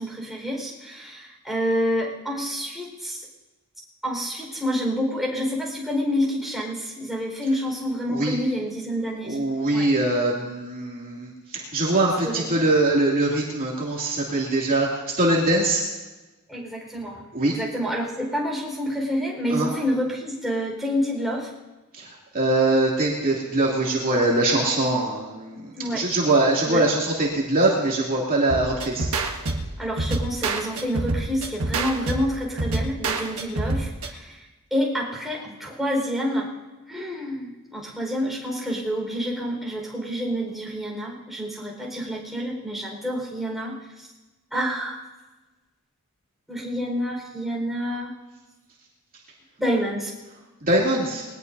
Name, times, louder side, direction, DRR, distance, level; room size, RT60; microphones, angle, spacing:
voice 1, 0.0-3.2 4.0-9.4 9.7-9.9 12.2-12.5 16.5-21.5 25.7-26.1 26.6-26.8 29.8-36.5 36.9-44.1 44.5-45.0 46.5-48.1 49.6-50.1, equal, ahead, -2 dB, 4.7 m, -28 dB
voice 2, 9.2-15.8 17.3-17.5 19.5-19.7 21.9-29.1 50.6-51.2, right 2 dB, 40° right, -4 dB, 2.6 m, -22 dB
sound 1, 28.5-34.1, right 2 dB, 70° right, 1.4 m, -27 dB
21.5 x 19.0 x 2.7 m, 1.2 s
head